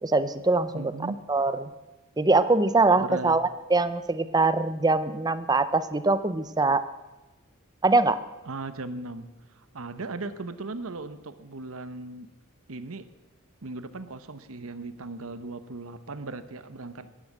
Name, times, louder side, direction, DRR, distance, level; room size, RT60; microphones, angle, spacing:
voice 1, 0.0-0.9 1.3-1.7 2.2-6.9 7.8-8.2, right 3 dB, 20° right, 14 dB, 0.6 m, -23 dB
voice 2, 0.7-1.2 3.0-3.4 8.5-9.3 9.5-12.3 12.7-13.1 13.6-17.1, right 3 dB, 65° right, 12 dB, 0.9 m, -37 dB
14.5 x 11.0 x 7.4 m, 1.1 s
head